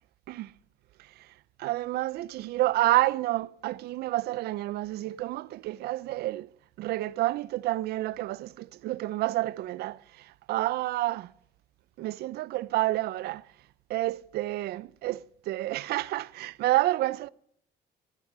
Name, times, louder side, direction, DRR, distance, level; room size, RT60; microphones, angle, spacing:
voice 1, 1.6-6.5 6.8-11.3 12.0-13.4 13.9-17.3, right 17 dB, 70° right, 0.5 m, -29 dB
14.0 x 13.5 x 5.4 m
cardioid pair, 110°, 17 cm